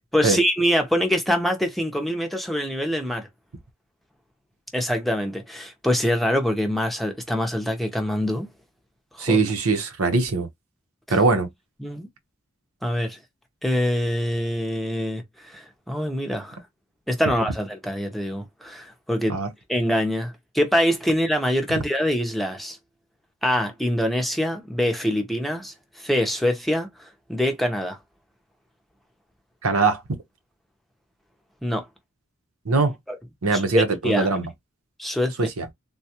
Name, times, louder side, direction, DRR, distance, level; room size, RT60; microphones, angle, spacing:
voice 1, 0.1-3.3 4.7-8.5 9.1-9.4 11.8-12.1 12.8-13.2 13.6-16.6 17.1-19.4 19.7-22.8 23.4-28.0 31.6-31.9 33.1-33.2 33.5-34.3 35.0-35.3, equal, ahead, 0.7 m, -24 dB
voice 2, 9.2-10.5 11.1-11.5 19.3-19.5 29.6-30.0 32.7-32.9 33.4-34.5 35.4-35.7, right 3 dB, 90° right, 0.9 m, -21 dB
3.7 x 2.3 x 2.8 m
head